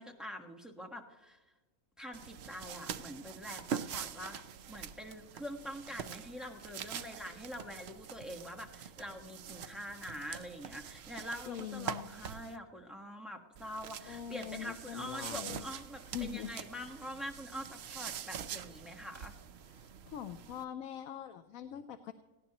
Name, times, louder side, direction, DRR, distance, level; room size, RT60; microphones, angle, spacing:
voice 1, 0.0-1.4 2.0-4.4 4.7-19.4, equal, ahead, 3 dB, 1.2 m, -45 dB
sound 1, 2.1-12.6 13.6-20.6, right 8 dB, 60° right, 0.8 m, -45 dB
voice 2, 11.5-12.1 14.1-15.6 16.1-16.5 19.8-22.1, left 10 dB, 80° left, 9 dB, 1.1 m, -43 dB
18.5 x 16.5 x 2.9 m, 1.2 s
omnidirectional pair, 1.4 m